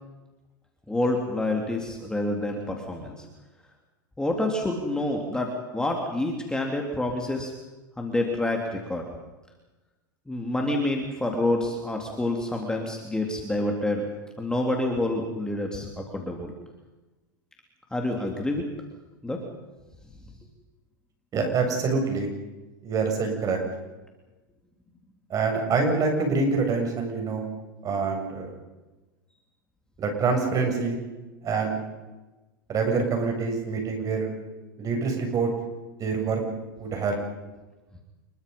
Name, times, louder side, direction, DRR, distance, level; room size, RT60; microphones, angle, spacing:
voice 1, 0.9-3.3 4.2-7.5 8.0-9.1 10.3-14.1 14.4-16.5 17.9-18.6 19.2-19.4, left 1 dB, 5° left, 1 dB, 3.4 m, -28 dB
voice 2, 21.3-22.3 22.8-23.6 25.3-27.5 27.8-28.5 30.0-31.0 31.4-31.8 32.7-34.3 34.8-35.5 36.0-36.4 36.8-37.2, right 4 dB, 30° right, 3 dB, 7.7 m, -26 dB
27.5 x 23.0 x 5.5 m, 1.1 s
hypercardioid pair, 120°, 11 cm